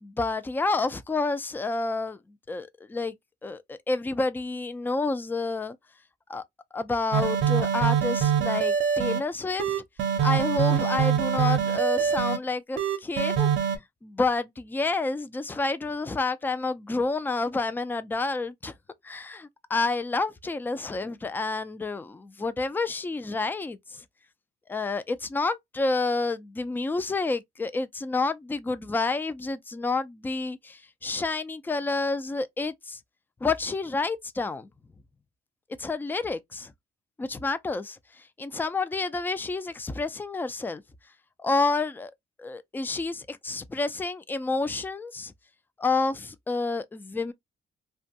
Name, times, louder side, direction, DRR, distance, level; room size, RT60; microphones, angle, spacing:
voice 1, 0.0-2.2 2.5-3.1 3.4-5.8 6.3-6.4 6.7-9.8 10.2-13.5 14.0-18.7 19.0-24.0 24.7-33.0 33.4-34.7 35.8-36.7 37.2-38.0 38.4-40.8 41.4-42.1 42.4-45.3 45.8-47.3, left 3 dB, 10° left, 0.3 m, -29 dB
sound 1, 7.1-9.2 9.6-12.4 12.8-13.8, right 8 dB, 70° right, 0.6 m, -24 dB
2.4 x 2.2 x 2.6 m
cardioid pair, 90°, 20 cm